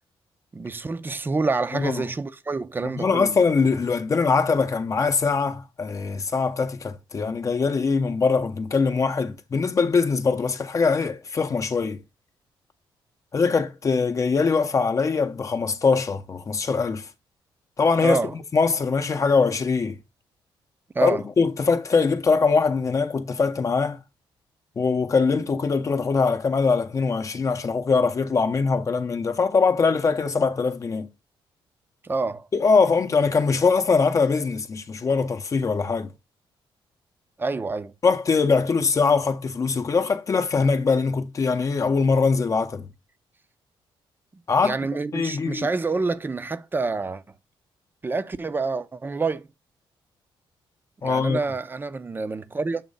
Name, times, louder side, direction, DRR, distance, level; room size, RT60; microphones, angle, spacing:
voice 1, 0.5-3.3 18.0-18.3 20.9-21.2 32.0-32.5 37.4-37.9 44.3-47.2 48.0-49.5 51.0-52.8, right 3 dB, 20° right, 0.6 m, -27 dB
voice 2, 1.7-2.0 2.8-12.0 13.3-17.1 17.8-18.2 18.5-20.0 21.0-24.0 24.8-31.1 32.5-36.1 38.0-42.9 44.5-44.8 45.1-45.7 51.0-51.4, left 4 dB, 35° left, 0.7 m, -22 dB
7.3 x 3.1 x 5.3 m
cardioid pair, 115°, 9 cm